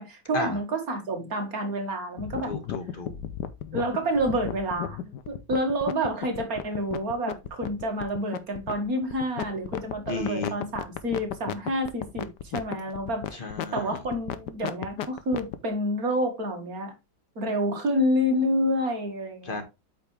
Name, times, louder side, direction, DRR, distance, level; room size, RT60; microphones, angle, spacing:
voice 1, 0.0-2.6 3.7-5.0 5.3-16.9 17.4-19.6, equal, 50° right, 2.3 m, -28 dB
sound 1, 2.2-15.6, left 10 dB, 70° left, 1.3 m, -34 dB
voice 2, 2.5-3.1 10.1-10.6 13.3-14.0 19.5-19.6, left 3 dB, 30° left, 1.7 m, -33 dB
8.3 x 5.7 x 3.3 m
omnidirectional pair, 2.1 m